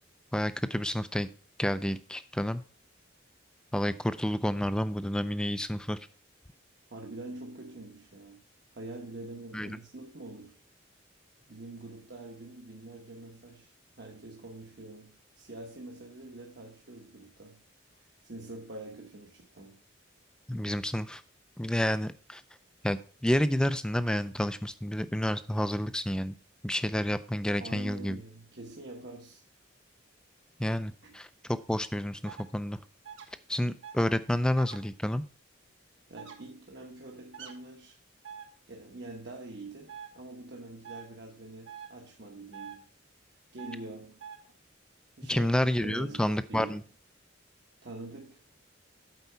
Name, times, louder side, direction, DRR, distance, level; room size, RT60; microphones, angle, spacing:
voice 1, 0.3-1.3 1.6-2.6 3.7-6.0 9.5-9.7 20.5-21.2 21.6-22.4 22.8-26.3 26.6-28.2 30.6-32.8 33.5-35.2 45.3-46.8, left 1 dB, 5° left, 0.3 m, -29 dB
voice 2, 6.9-8.4 8.7-10.6 11.5-17.6 18.0-19.8 27.6-29.4 31.0-31.1 36.1-38.0 38.7-42.9 43.5-44.2 45.2-45.5 45.8-46.8 47.8-48.4, right 2 dB, 60° right, 1.1 m, -45 dB
sound 1, 32.3-32.4 33.0-33.3 33.8-34.0 34.6-34.8 36.2-36.4 37.3-37.5 38.2-38.5 39.9-40.1 40.8-41.0 41.7-41.9 42.5-42.8 43.6-43.8 44.2-44.4, right 8 dB, 75° right, 1.4 m, -44 dB
8.1 x 4.7 x 5.6 m
head